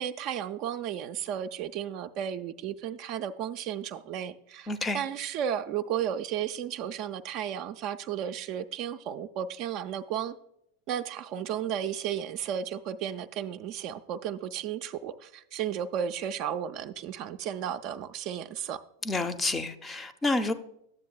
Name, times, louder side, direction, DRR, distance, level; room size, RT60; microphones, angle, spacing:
voice 1, 0.0-10.4 10.9-18.8, right 9 dB, 40° right, 0.3 m, -34 dB
voice 2, 4.7-5.0 19.0-20.5, left 2 dB, 15° left, 0.5 m, -29 dB
11.5 x 7.6 x 2.2 m
figure-of-eight pair, 85°, 0 cm